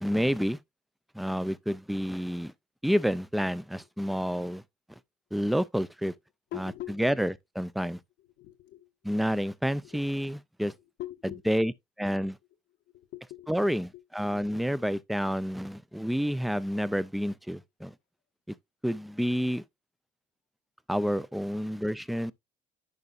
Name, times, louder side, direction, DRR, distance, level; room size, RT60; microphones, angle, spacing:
voice 1, 0.0-0.6 1.1-2.5 2.8-4.6 5.3-6.1 6.6-6.7 7.0-8.0 9.0-10.7 11.5-11.7 12.0-12.4 13.5-17.9 18.5-18.6 18.8-19.6 20.9-22.3, equal, ahead, 0.3 m, -29 dB
voice 2, 6.5-7.2 7.8-8.9 9.8-10.0 11.0-11.4 12.9-13.5 13.9-14.4, left 14 dB, 85° left, 1.0 m, -43 dB
11.0 x 4.8 x 2.5 m
cardioid pair, 110°, 17 cm